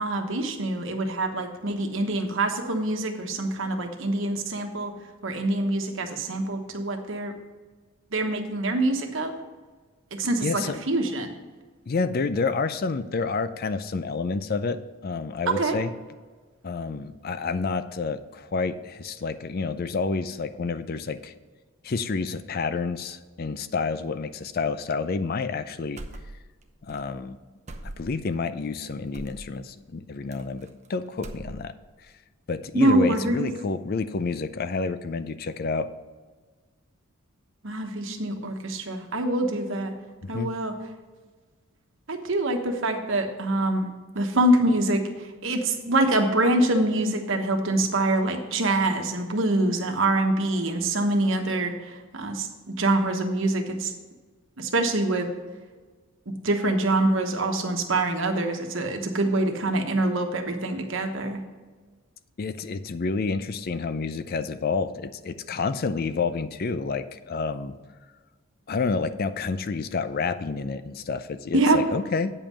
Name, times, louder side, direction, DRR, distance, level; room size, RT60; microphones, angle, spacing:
voice 1, 0.0-4.9 5.2-7.3 8.1-9.3 10.2-10.6 10.9-11.3 15.5-15.8 32.7-33.5 37.6-39.9 40.3-40.7 42.1-43.9 44.1-45.0 45.4-52.5 52.8-53.9 54.6-55.3 56.4-61.4 71.5-71.8, right 2 dB, 60° right, 4 dB, 1.2 m, -25 dB
voice 2, 10.4-10.8 11.9-15.9 16.6-21.3 21.8-26.0 26.8-27.4 27.8-31.7 32.0-32.1 32.5-35.9 40.2-40.5 62.4-67.7 68.7-72.3, left 4 dB, 45° left, 12 dB, 0.4 m, -29 dB
sound 1, 26.0-26.6 26.9-27.0 27.7-28.3 29.1-29.5 30.3-30.9 31.1-31.9, right 1 dB, 30° right, 0.7 m, -40 dB
8.7 x 5.5 x 6.2 m, 1.4 s
head